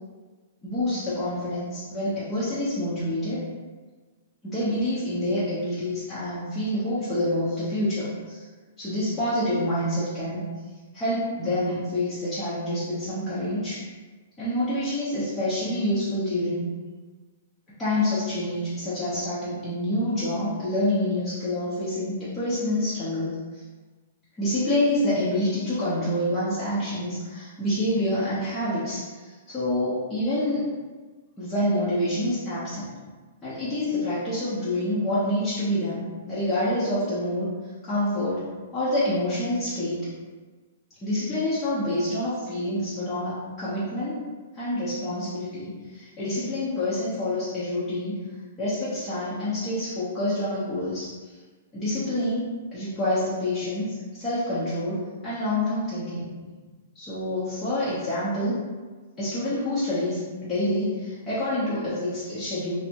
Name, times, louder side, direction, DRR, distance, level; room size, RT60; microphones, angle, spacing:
voice 1, 0.6-3.4 4.4-8.4 8.8-10.4 10.9-13.8 14.4-16.7 17.8-23.3 24.4-30.6 31.4-33.0 33.4-37.5 37.8-38.4 38.7-40.1 41.0-44.2 44.5-48.2 48.6-51.3 51.7-56.3 56.9-58.6 59.2-62.8, left 1 dB, 10° left, -13 dB, 0.7 m, -27 dB
3.3 x 2.0 x 2.8 m, 1.4 s
hypercardioid pair, 165°, 0 cm